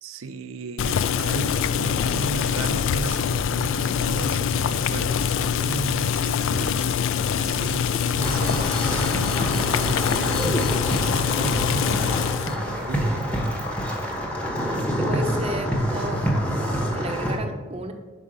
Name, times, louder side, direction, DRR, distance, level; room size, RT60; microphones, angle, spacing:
voice 1, 0.0-13.4, right 3 dB, 85° right, 8 dB, 0.5 m, -35 dB
Boiling, 0.8-12.6, left 7 dB, 70° left, 0.3 m, -24 dB
sound 1, 8.2-17.4, equal, 5° left, 0.9 m, -26 dB
voice 2, 15.0-17.9, right 1 dB, 30° right, 6 dB, 0.6 m, -33 dB
5.6 x 5.1 x 5.0 m, 1.4 s
head